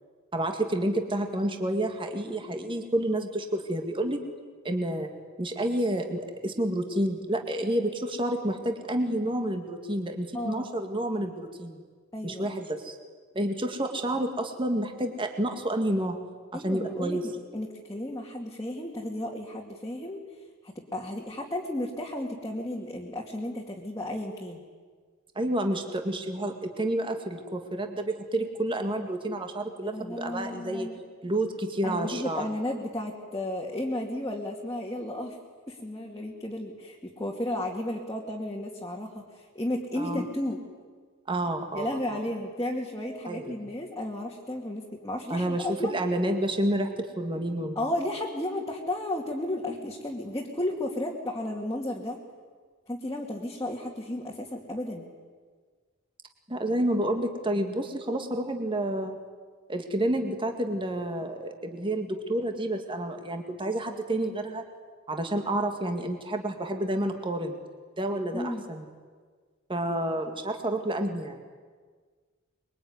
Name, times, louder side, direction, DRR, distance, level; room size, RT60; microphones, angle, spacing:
voice 1, 0.3-4.2 4.6-5.1 5.4-11.8 12.2-12.9 13.3-16.2 16.5-17.2 25.4-30.9 31.2-32.4 40.0-40.3 41.3-42.2 43.3-43.5 45.3-47.8 56.5-59.2 59.7-64.7 65.1-67.6 68.0-68.9 69.7-71.4, right 1 dB, 25° right, 5 dB, 2.1 m, -29 dB
voice 2, 10.3-10.7 12.1-12.6 16.5-20.2 20.6-24.6 29.8-31.0 31.8-35.4 35.7-40.6 41.7-46.0 47.8-52.2 52.9-55.1 68.3-68.6, left 1 dB, 15° left, -2 dB, 2.4 m, -33 dB
24.5 x 23.0 x 9.7 m, 1.6 s
head